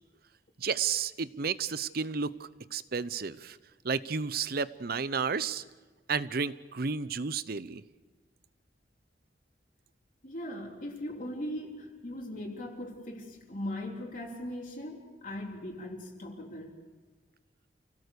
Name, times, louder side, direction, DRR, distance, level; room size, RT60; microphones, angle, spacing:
voice 1, 0.6-3.6 3.8-5.6 6.1-7.8, right 5 dB, 55° right, 16 dB, 0.7 m, -32 dB
voice 2, 10.2-16.7, left 1 dB, 50° left, -1 dB, 3.6 m, -39 dB
28.0 x 18.0 x 6.8 m, 1.3 s
head